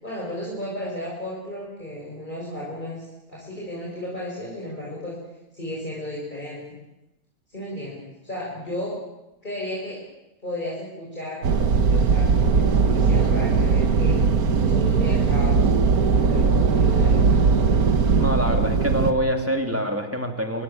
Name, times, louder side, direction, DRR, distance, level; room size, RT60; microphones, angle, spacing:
voice 1, 0.0-5.1 5.5-6.6 7.5-9.0 9.4-10.0 10.4-11.4 11.8-14.1 14.6-17.2, left 1 dB, 30° left, -5 dB, 6.8 m, -34 dB
sound 1, 11.4-19.1, right 5 dB, 70° right, 1.8 m, -19 dB
voice 2, 18.2-20.6, equal, 10° right, 3 dB, 3.3 m, -25 dB
26.5 x 23.5 x 7.5 m, 0.98 s
omnidirectional pair, 1.7 m